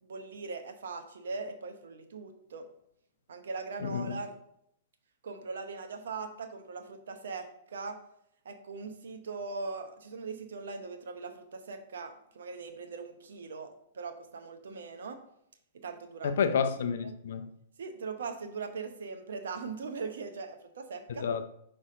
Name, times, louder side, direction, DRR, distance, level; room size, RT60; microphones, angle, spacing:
voice 1, 0.0-2.7 3.3-4.3 5.2-8.0 8.4-15.2 15.8-16.3 17.0-17.2 17.8-21.3, right 4 dB, 75° right, 0.8 m, -40 dB
voice 2, 3.8-4.2 16.2-17.5 21.2-21.5, left 6 dB, 70° left, 0.5 m, -29 dB
5.5 x 3.4 x 5.0 m
hypercardioid pair, 110°, 0 cm